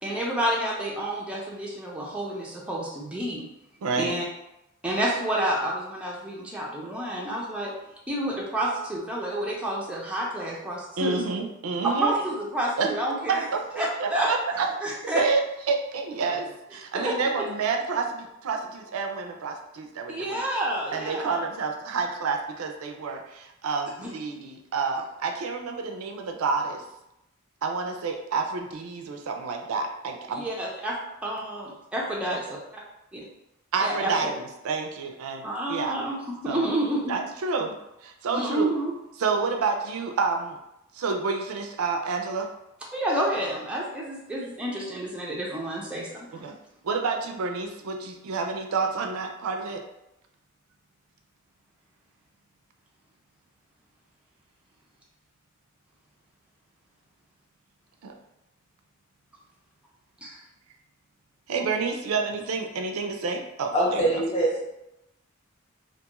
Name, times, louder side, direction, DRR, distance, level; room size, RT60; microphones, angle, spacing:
voice 1, 0.0-3.4 4.0-4.2 4.8-7.7 8.1-11.2 11.8-13.4 13.8-14.3 14.8-15.2 16.9-17.4 20.1-21.4 24.0-24.1 30.3-31.0 31.2-32.4 33.8-34.3 35.4-37.1 38.3-38.9 42.9-46.5 60.2-60.4, right 1 dB, 5° right, -4 dB, 0.4 m, -29 dB
voice 2, 3.8-4.1 11.0-12.1 12.8-12.9 13.3-14.7 15.0-20.5 20.9-26.8 27.6-30.5 33.7-36.0 36.4-36.6 37.1-38.7 39.2-40.6 40.9-42.5 46.3-46.6 46.8-49.8 58.0-58.1 61.5-64.2, right 4 dB, 80° right, 3 dB, 0.4 m, -29 dB
voice 3, 63.7-64.6, right 1 dB, 30° left, -5 dB, 0.9 m, -23 dB
2.5 x 2.3 x 2.9 m, 0.86 s
head